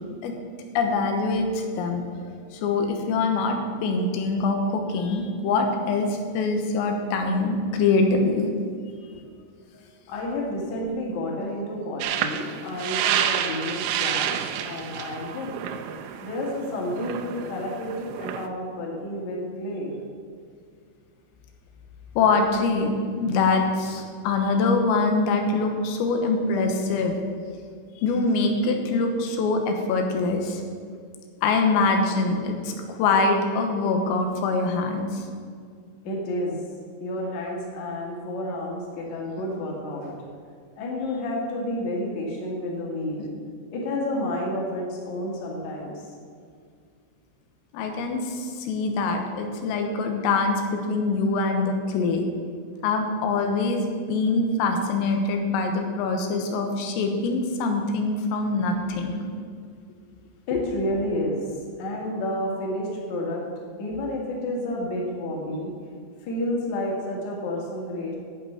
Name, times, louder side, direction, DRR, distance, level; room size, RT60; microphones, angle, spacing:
voice 1, 0.8-2.1 2.5-8.5 22.2-27.1 28.0-30.6 31.4-35.2 47.7-52.3 52.8-59.2 60.5-60.7, left 3 dB, 85° left, 3 dB, 3.9 m, -24 dB
voice 2, 10.1-14.3 14.6-15.5 16.2-20.0 36.0-36.6 37.0-40.2 40.8-43.3 43.7-46.1 60.5-61.4 61.8-63.4 63.8-65.7 66.2-68.2, left 1 dB, 45° left, -2 dB, 2.6 m, -30 dB
sound 1, 12.0-18.5, right 9 dB, 85° right, 3.2 m, -29 dB
11.5 x 8.5 x 5.8 m, 2.1 s
omnidirectional pair, 5.8 m